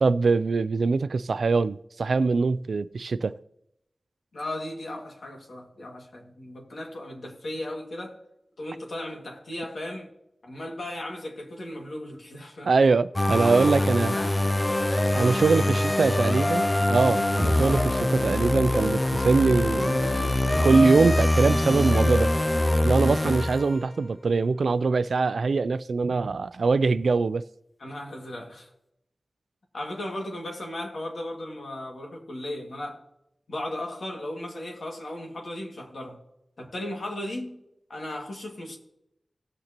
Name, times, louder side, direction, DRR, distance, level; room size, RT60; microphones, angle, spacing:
voice 1, 0.0-3.4 12.7-14.1 15.1-20.3 20.6-22.3 22.8-27.4, right 4 dB, 80° right, 0.3 m, -23 dB
voice 2, 4.3-8.2 8.6-10.1 10.4-12.7 13.4-14.4 15.4-15.5 16.0-16.3 27.8-28.7 29.7-33.0 33.5-36.2 36.6-37.6 37.9-38.8, left 1 dB, 70° left, 2.1 m, -36 dB
sound 1, 13.2-24.0, left 1 dB, 25° left, 0.4 m, -24 dB
17.5 x 6.6 x 2.9 m
wide cardioid pair, 90°, 0 cm